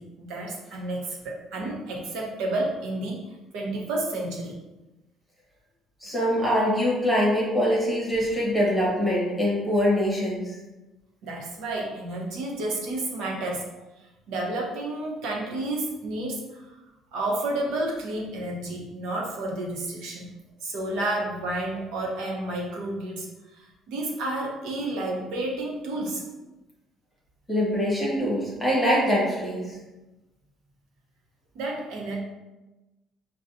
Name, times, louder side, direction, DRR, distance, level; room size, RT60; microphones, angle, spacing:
voice 1, 0.0-3.2 3.5-4.6 11.2-13.7 14.3-16.8 17.1-20.3 20.6-23.3 23.6-26.2 31.5-32.2, right 2 dB, 85° right, -2 dB, 0.9 m, -31 dB
voice 2, 6.0-10.6 27.5-29.8, equal, 5° left, -5 dB, 1.1 m, -24 dB
5.3 x 2.3 x 2.6 m, 1.1 s
cardioid pair, 165°, 0 cm